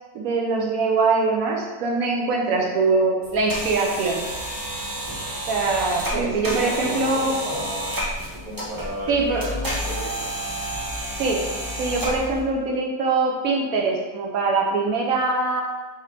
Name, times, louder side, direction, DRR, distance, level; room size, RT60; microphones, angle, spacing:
voice 1, 0.1-4.2 5.5-7.4 9.1-9.5 11.2-11.5 11.8-15.6, right 3 dB, 70° right, -1 dB, 1.0 m, -23 dB
sound 1, 3.2-12.4, equal, 25° right, 0.4 m, -30 dB
voice 2, 6.1-7.9 8.4-10.3, equal, 15° left, -9 dB, 0.8 m, -33 dB
4.1 x 3.0 x 4.1 m, 1.3 s
omnidirectional pair, 1.6 m